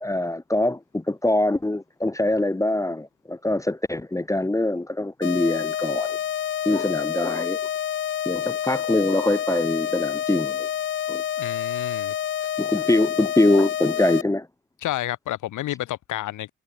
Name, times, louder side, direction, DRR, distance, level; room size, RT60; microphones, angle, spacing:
voice 1, 0.0-6.2 6.6-7.6 8.3-10.7 11.1-11.2 12.6-14.5, left 1 dB, 10° left, 0.9 m, -23 dB
sound 1, 5.2-14.2, left 10 dB, 40° left, 0.6 m, -28 dB
voice 2, 11.4-12.1 14.8-16.5, left 14 dB, 80° left, 2.3 m, -30 dB
cardioid pair, 90°, 30 cm